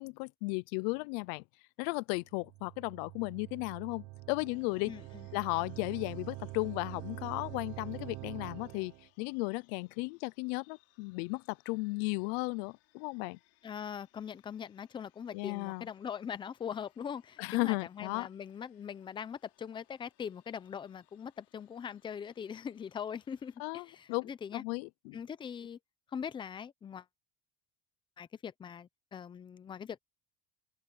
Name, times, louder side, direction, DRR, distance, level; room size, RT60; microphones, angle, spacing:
voice 1, 0.0-1.4 1.8-4.9 5.3-8.9 9.2-13.4 15.3-15.9 17.4-18.3 23.6-25.2, left 28 dB, 70° left, 0.5 m, -35 dB
sound 1, 2.3-9.1, right 20 dB, 50° right, 0.8 m, -45 dB
sound 2, 4.5-23.6, left 17 dB, 50° left, 5.2 m, -71 dB
voice 2, 4.9-5.3 13.6-24.6 25.1-25.8 26.1-27.0 28.2-30.0, left 7 dB, 15° left, 0.6 m, -42 dB
open air
cardioid pair, 165°, 30 cm